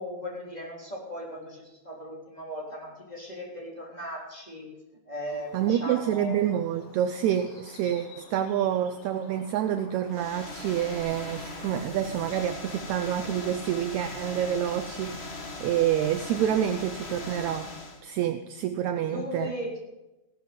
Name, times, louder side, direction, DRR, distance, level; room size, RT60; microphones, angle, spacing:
voice 1, 0.0-4.7 5.1-6.4 18.9-19.8, equal, 10° left, -2 dB, 3.4 m, -37 dB
Bird, 5.3-11.0, left 3 dB, 90° left, 5.3 m, -52 dB
voice 2, 5.5-17.7 18.0-19.5, right 10 dB, 85° right, 10 dB, 1.6 m, -28 dB
sound 1, 10.1-18.0, left 2 dB, 30° left, 1.1 m, -39 dB
16.0 x 13.0 x 5.3 m, 1.0 s
omnidirectional pair, 3.9 m